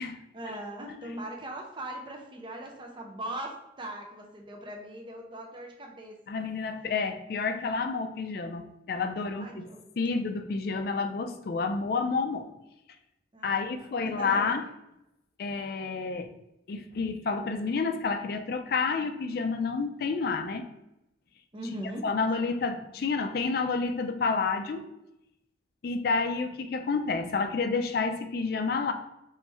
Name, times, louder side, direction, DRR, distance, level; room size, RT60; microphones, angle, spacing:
voice 1, 0.3-6.2 9.4-9.8 13.3-14.6 21.5-22.1, right 1 dB, 25° right, 1 dB, 0.5 m, -40 dB
voice 2, 6.3-9.7 10.0-12.5 13.4-14.7 15.4-16.3 16.7-20.6 22.0-24.8 25.8-28.9, left 4 dB, 50° left, 7 dB, 0.3 m, -29 dB
3.1 x 3.0 x 3.3 m, 0.87 s
head